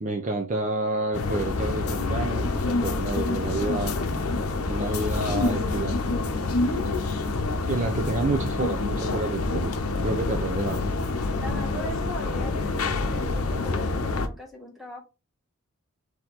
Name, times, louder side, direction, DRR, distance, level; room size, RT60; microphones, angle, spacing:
voice 1, 0.0-4.0 4.7-6.2 7.6-9.7 10.0-10.9, right 2 dB, 35° right, 3 dB, 0.5 m, -29 dB
sound 1, 1.1-14.3, left 3 dB, 90° left, 0.7 m, -27 dB
voice 2, 11.4-15.0, left 1 dB, ahead, -1 dB, 1.2 m, -39 dB
4.3 x 2.9 x 3.9 m, 0.29 s
head